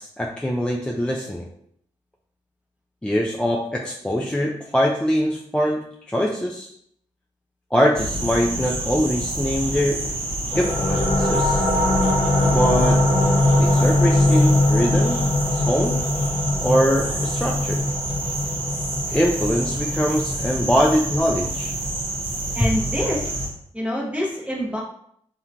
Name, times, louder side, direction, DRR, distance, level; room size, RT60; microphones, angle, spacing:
voice 1, 0.0-1.5 3.0-6.7 7.7-10.0 10.5-11.6 12.5-13.1 13.6-15.2 15.5-16.0 16.6-17.8 19.1-21.7, equal, 10° left, -1 dB, 0.3 m, -23 dB
sound 1, 7.9-23.5, right 1 dB, 45° right, 0.7 m, -28 dB
sound 2, 10.5-21.9, left 1 dB, 40° left, 0.9 m, -22 dB
voice 2, 22.5-24.8, equal, 10° right, -7 dB, 0.8 m, -27 dB
2.9 x 2.2 x 2.5 m, 0.67 s
cardioid pair, 60°, 13 cm